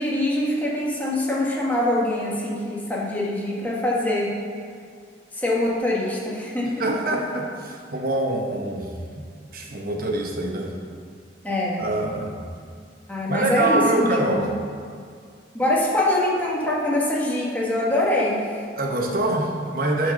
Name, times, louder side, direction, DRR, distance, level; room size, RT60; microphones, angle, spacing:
voice 1, 0.0-4.3 5.3-6.8 11.4-11.8 13.1-14.5 15.5-18.6, left 1 dB, 10° left, -5 dB, 1.5 m, -24 dB
voice 2, 6.8-9.2 9.5-10.7 11.8-12.4 13.3-14.5 18.7-20.1, right 2 dB, 50° right, 1 dB, 1.1 m, -25 dB
9.4 x 4.6 x 6.4 m, 2.2 s
head